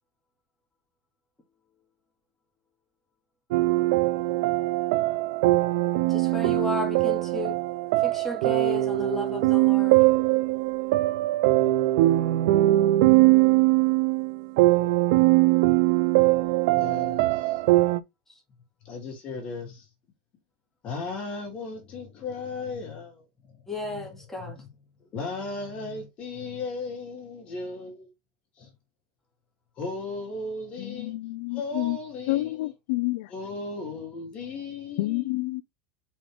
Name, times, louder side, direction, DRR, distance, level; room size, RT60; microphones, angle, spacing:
sound 1, 3.5-18.0, right 18 dB, 70° right, 0.5 m, -21 dB
voice 1, 6.1-7.6 8.0-10.0 23.7-24.6, left 2 dB, 10° left, 2.5 m, -33 dB
voice 2, 16.7-17.6 18.8-19.9 20.8-24.7 25.1-28.1 28.6-28.7 29.8-31.1 31.5-32.7 33.3-35.4, left 3 dB, 35° left, 3.2 m, -36 dB
voice 3, 30.8-32.0 32.3-33.3 35.0-35.6, left 19 dB, 70° left, 0.6 m, -29 dB
5.3 x 5.1 x 3.6 m
supercardioid pair, 140°, 4 cm